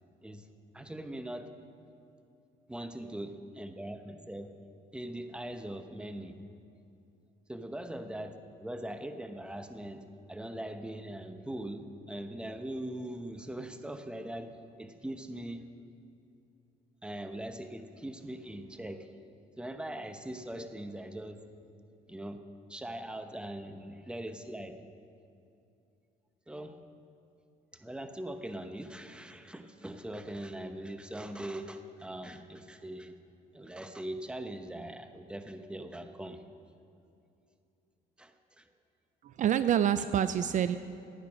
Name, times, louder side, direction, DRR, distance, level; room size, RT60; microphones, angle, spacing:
voice 1, 0.7-1.5 2.7-4.5 4.9-6.4 7.5-14.5 14.8-15.6 17.0-19.1 19.6-21.4 22.1-22.4 22.7-24.8 26.5-26.8 27.7-33.2 33.5-36.4 38.2-38.3, right 1 dB, 5° right, 8 dB, 0.9 m, -41 dB
voice 2, 39.2-40.8, right 9 dB, 50° right, 12 dB, 0.4 m, -27 dB
15.0 x 9.2 x 6.3 m, 2.6 s
cardioid pair, 110°, 17 cm